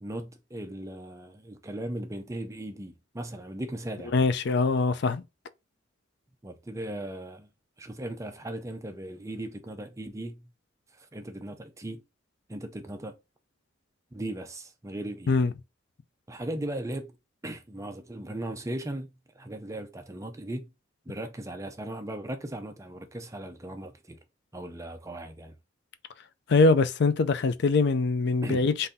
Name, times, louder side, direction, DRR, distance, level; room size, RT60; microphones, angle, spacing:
voice 1, 0.0-4.1 6.4-7.5 7.8-10.5 10.9-12.0 12.5-13.2 14.1-15.4 16.3-17.2 17.4-20.7 21.1-24.2 24.5-25.5 28.4-28.7, right 1 dB, 15° right, 0.6 m, -37 dB
voice 2, 4.1-5.2 15.3-15.5 26.5-28.9, left 3 dB, 60° left, 0.4 m, -23 dB
3.9 x 2.6 x 4.0 m
head